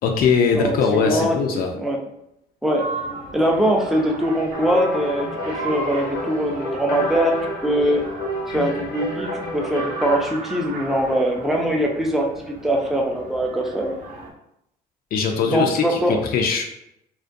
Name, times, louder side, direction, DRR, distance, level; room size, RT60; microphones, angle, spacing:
voice 1, 0.0-1.7 15.1-16.6, left 5 dB, 60° left, 2 dB, 0.4 m, -21 dB
voice 2, 0.5-1.4 1.7-2.0 2.6-2.9 3.3-7.3 7.6-8.0 8.5-12.3 12.6-13.9 15.5-16.2, equal, ahead, 0 dB, 0.4 m, -22 dB
sound 1, 2.8-14.3, right 2 dB, 55° right, 0.6 m, -36 dB
sound 2, 4.5-10.2, left 1 dB, 90° left, 0.8 m, -30 dB
2.3 x 2.1 x 2.5 m, 0.78 s
cardioid pair, 110°, 17 cm